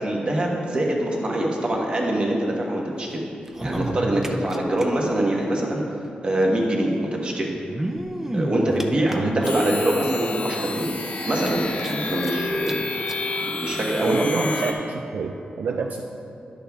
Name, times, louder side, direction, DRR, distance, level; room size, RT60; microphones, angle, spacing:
voice 1, 0.0-3.2 3.6-5.8 6.2-7.5 8.3-10.9 11.3-12.8 13.4-14.5, right 1 dB, 35° right, -1 dB, 1.2 m, -24 dB
sound 1, 3.4-4.8 5.1-5.2 5.4-5.5 6.6-6.7 7.5-9.8 10.4-10.5 10.8-10.9 11.3-12.3 12.7-12.8 13.1-13.2 14.0-14.1, right 1 dB, 15° right, 0.5 m, -30 dB
voice 2, 9.1-9.4 14.0-14.8 15.1-16.1, right 5 dB, 70° right, 3 dB, 0.4 m, -28 dB
sound 2, 9.4-14.7, left 3 dB, 55° left, 0.8 m, -30 dB
10.5 x 6.6 x 3.5 m, 2.7 s
wide cardioid pair, 135°, 3 cm